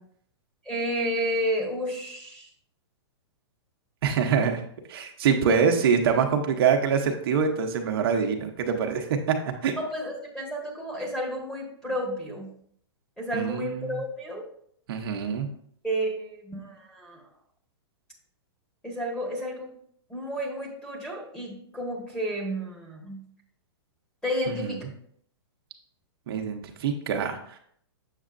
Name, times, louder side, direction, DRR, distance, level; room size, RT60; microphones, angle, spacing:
voice 1, 0.6-2.5 5.5-5.6 9.8-12.5 13.2-14.4 15.8-17.2 18.8-19.7 20.1-23.2 24.2-24.8, equal, 5° left, -2 dB, 1.4 m, -31 dB
voice 2, 4.0-4.6 4.9-9.3 9.6-9.7 13.3-14.0 14.9-15.5 24.5-24.8 26.3-27.6, right 6 dB, 60° right, 3 dB, 0.8 m, -25 dB
7.3 x 6.3 x 2.5 m, 0.65 s
hypercardioid pair, 155°, 14 cm